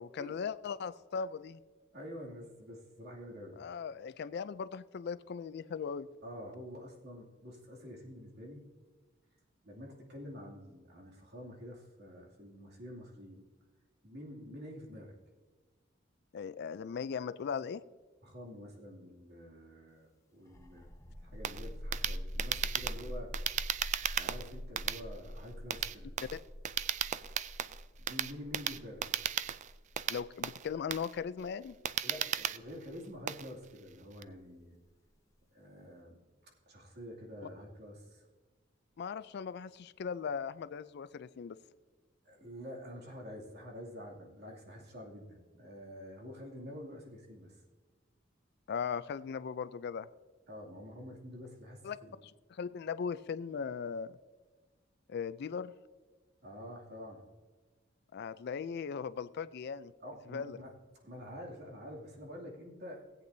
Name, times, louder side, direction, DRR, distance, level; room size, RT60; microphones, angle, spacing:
voice 1, 0.0-1.6 3.6-6.1 16.3-17.8 26.3-26.4 30.1-31.7 39.0-41.6 48.7-50.1 51.8-52.0 52.2-54.1 55.1-55.7 58.1-59.9 60.3-60.6, left 6 dB, 55° left, 15 dB, 0.4 m, -38 dB
voice 2, 1.9-3.6 6.2-8.7 9.6-13.4 14.0-15.1 18.2-20.9 21.2-23.3 24.1-26.1 28.1-29.0 32.0-34.8 35.5-36.2 36.7-38.2 42.2-47.6 50.5-52.1 56.4-57.2 60.0-60.7 61.0-63.0, equal, 60° right, -2 dB, 2.5 m, -48 dB
sound 1, 20.5-33.8, equal, 15° left, 0.8 m, -45 dB
sound 2, 21.4-34.2, right 10 dB, 40° right, 0.3 m, -36 dB
17.5 x 8.4 x 2.7 m, 1.4 s
head